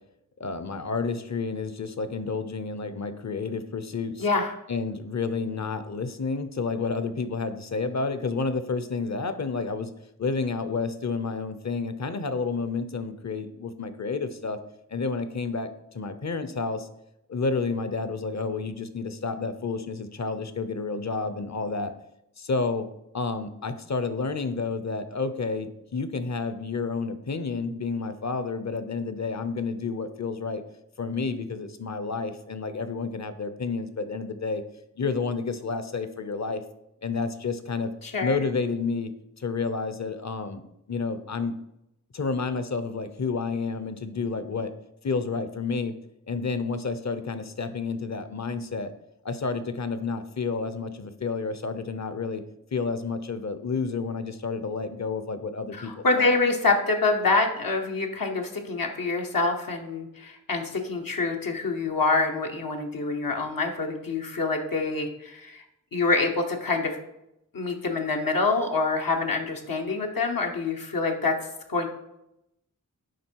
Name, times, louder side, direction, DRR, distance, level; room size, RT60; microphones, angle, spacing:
voice 1, 0.4-4.3 4.7-9.9 10.2-14.6 14.9-16.9 17.3-21.9 22.4-22.9 23.1-30.6 31.0-34.6 35.0-36.6 37.0-37.9 38.2-39.1 39.4-40.6 40.9-41.5 42.1-44.7 45.0-45.9 46.3-48.9 49.2-52.4 52.7-56.3, left 4 dB, 55° left, 11 dB, 0.7 m, -30 dB
voice 2, 4.2-4.5 38.0-38.4 55.7-65.6 65.9-67.0 67.5-71.4 71.7-71.9, left 3 dB, 80° left, 2 dB, 1.1 m, -26 dB
10.0 x 3.7 x 4.6 m, 0.84 s
wide cardioid pair, 55°, 33 cm